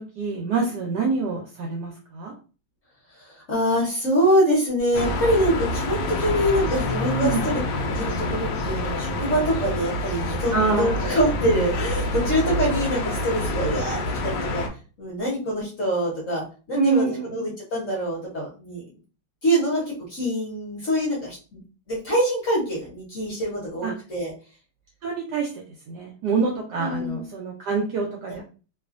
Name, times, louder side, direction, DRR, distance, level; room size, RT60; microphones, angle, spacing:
voice 1, 0.0-2.3 7.2-7.4 10.5-11.0 16.8-17.4 23.8-23.9 25.0-25.5 25.9-28.4, right 4 dB, 70° right, 0 dB, 1.0 m, -25 dB
voice 2, 3.1-14.7 15.0-18.8 19.4-21.6 21.9-24.3 26.8-27.3 28.3-28.4, equal, 50° left, -5 dB, 1.1 m, -25 dB
sound 1, 4.9-14.7, left 1 dB, 75° left, 1.2 m, -27 dB
3.1 x 2.3 x 2.4 m, 0.35 s
omnidirectional pair, 2.2 m